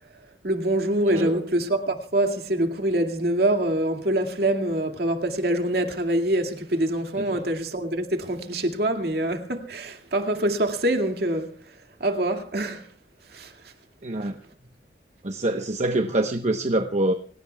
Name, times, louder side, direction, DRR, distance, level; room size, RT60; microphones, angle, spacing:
voice 1, 0.4-11.5 12.0-12.9 13.3-13.5, right 1 dB, 60° right, 2.2 m, -25 dB
voice 2, 1.1-1.4 7.2-7.4 14.0-14.4 15.2-17.1, right 1 dB, 40° right, 1.0 m, -25 dB
30.0 x 17.5 x 2.4 m
head